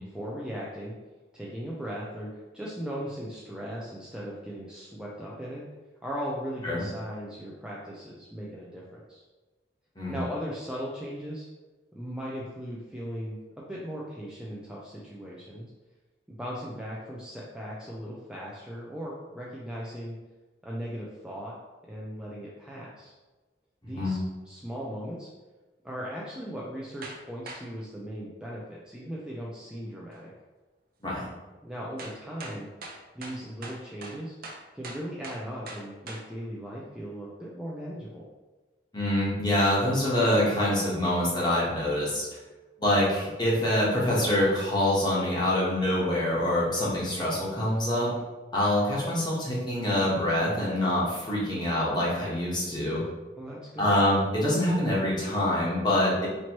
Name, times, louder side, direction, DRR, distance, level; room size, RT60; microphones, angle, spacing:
voice 1, 0.1-0.9 1.3-5.7 6.0-9.2 10.1-11.5 11.9-15.7 16.3-20.2 20.6-21.6 21.9-23.1 23.8-24.2 24.5-25.3 25.8-30.3 31.6-32.7 33.1-34.3 34.7-38.2 53.4-53.9, equal, 5° right, -5 dB, 0.4 m, -38 dB
voice 2, 23.8-24.2 31.0-31.3 38.9-42.3 42.8-48.1 48.5-53.0 53.8-56.3, left 1 dB, 25° left, -6 dB, 1.2 m, -25 dB
sound 1, 27.0-27.2 27.5-27.6 30.1-30.2 32.0-36.2, right 2 dB, 55° right, 0.6 m, -41 dB
4.3 x 3.0 x 2.9 m, 1.2 s
head